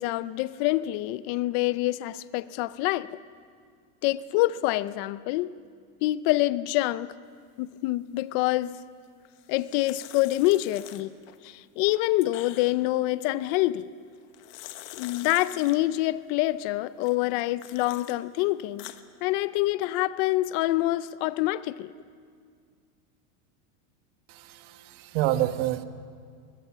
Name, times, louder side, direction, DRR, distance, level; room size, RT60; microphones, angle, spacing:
voice 1, 0.0-3.2 4.0-5.5 6.0-7.1 7.6-8.8 9.5-11.1 11.4-13.9 14.9-18.9 19.2-21.9, left 17 dB, 40° left, 16 dB, 0.6 m, -26 dB
sound 1, 9.2-11.4 11.8-12.9 14.1-15.8 17.0-18.2 18.6-19.0, left 15 dB, 60° left, 1.4 m, -45 dB
voice 2, 24.3-25.8, right 13 dB, 50° right, 10 dB, 1.3 m, -28 dB
21.0 x 21.0 x 7.4 m, 2.1 s
supercardioid pair, 155°, 45 cm